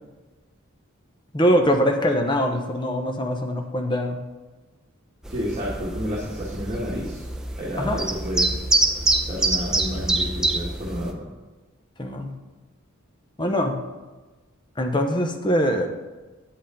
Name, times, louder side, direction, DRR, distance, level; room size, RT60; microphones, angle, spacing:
voice 1, 1.3-4.2 7.8-8.0 12.0-12.3 13.4-13.8 14.8-15.9, equal, 25° left, 4 dB, 0.9 m, -23 dB
sound 1, 5.2-11.1, right 2 dB, 5° right, 0.6 m, -25 dB
voice 2, 5.3-7.2 7.6-8.6 9.3-11.2, equal, 30° right, -5 dB, 1.5 m, -30 dB
8.7 x 8.2 x 3.8 m, 1.2 s
head